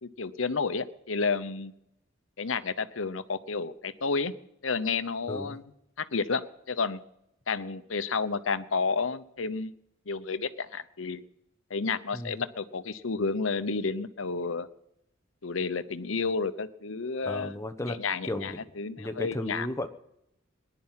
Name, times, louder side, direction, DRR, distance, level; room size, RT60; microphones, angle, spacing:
voice 1, 0.0-1.7 2.4-4.3 4.6-5.6 6.0-7.0 7.5-9.7 10.1-11.2 11.7-14.7 15.4-17.6 17.8-19.7, left 4 dB, 75° left, 12 dB, 0.9 m, -31 dB
voice 2, 17.2-18.0 18.2-18.6 19.0-19.9, left 1 dB, 15° left, 9 dB, 1.1 m, -34 dB
20.0 x 11.0 x 5.8 m, 0.80 s
head